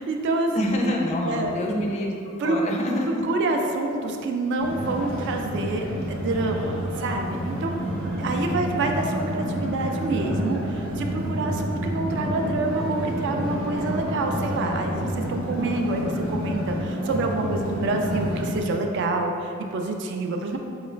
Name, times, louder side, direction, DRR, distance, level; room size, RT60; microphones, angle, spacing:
voice 1, 0.0-0.8 1.2-1.5 2.4-2.6 3.0-7.8 8.2-20.6, right 2 dB, 55° right, 3 dB, 0.3 m, -27 dB
voice 2, 0.5-2.1 2.4-3.2, left 1 dB, 30° left, 0 dB, 0.3 m, -26 dB
sound 1, 4.6-18.6, equal, 75° right, 0.8 m, -29 dB
3.7 x 2.4 x 3.1 m, 2.5 s
head